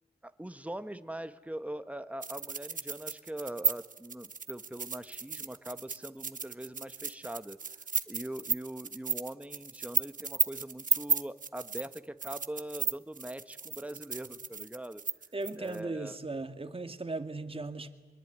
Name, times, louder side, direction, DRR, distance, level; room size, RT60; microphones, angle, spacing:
voice 1, 0.2-7.6 8.1-15.0 15.6-16.2, right 1 dB, 10° right, 10 dB, 1.4 m, -42 dB
sound 1, 2.2-15.8, right 5 dB, 55° right, 1.1 m, -34 dB
voice 2, 15.3-17.9, right 2 dB, 35° right, 8 dB, 2.0 m, -37 dB
23.5 x 22.0 x 9.4 m, 1.4 s
cardioid pair, 55°, 17 cm